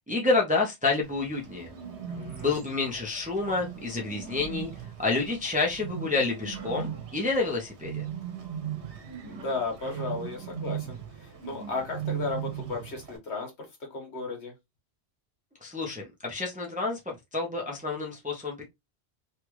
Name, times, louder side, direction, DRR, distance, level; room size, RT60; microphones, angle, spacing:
voice 1, 0.1-1.7 2.4-4.7 5.0-8.0 15.6-18.7, left 3 dB, 10° right, 0.6 m, -29 dB
Bird, 1.0-13.2, right 9 dB, 80° right, 1.2 m, -38 dB
voice 2, 2.1-2.6 9.3-14.5, left 3 dB, 75° left, 1.5 m, -35 dB
3.2 x 2.4 x 3.0 m
omnidirectional pair, 1.1 m